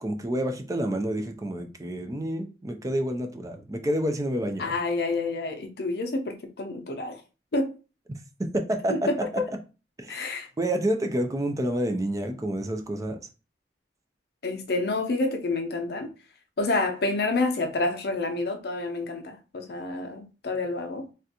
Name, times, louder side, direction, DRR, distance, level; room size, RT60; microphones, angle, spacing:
voice 1, 0.0-4.7 8.4-9.0 10.0-10.3 10.6-13.2, right 1 dB, 20° right, 0.4 m, -28 dB
voice 2, 4.6-7.2 7.5-7.7 8.9-9.4 10.1-10.5 14.4-16.1 16.6-21.1, left 2 dB, 60° left, 0.6 m, -28 dB
3.3 x 2.4 x 2.8 m
head